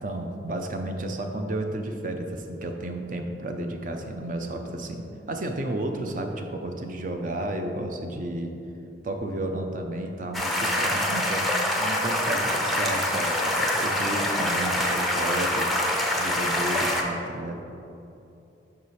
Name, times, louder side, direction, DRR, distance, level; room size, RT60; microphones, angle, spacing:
voice 1, 0.0-8.5 9.0-15.8 16.2-17.6, right 1 dB, 45° right, 4 dB, 0.5 m, -32 dB
sound 1, 10.3-17.0, left 1 dB, ahead, 0.5 m, -25 dB
5.5 x 4.8 x 4.1 m, 2.8 s
head